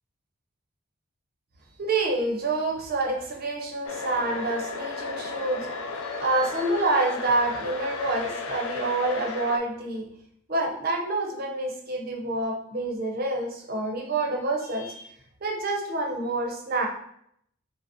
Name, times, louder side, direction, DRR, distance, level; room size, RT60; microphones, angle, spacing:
voice 1, 1.8-10.1 10.5-15.1 15.4-16.9, right 2 dB, 45° right, 0 dB, 0.6 m, -27 dB
sound 1, 3.8-9.6, left 4 dB, 85° left, 0.4 m, -34 dB
5.1 x 2.1 x 2.7 m, 0.70 s
head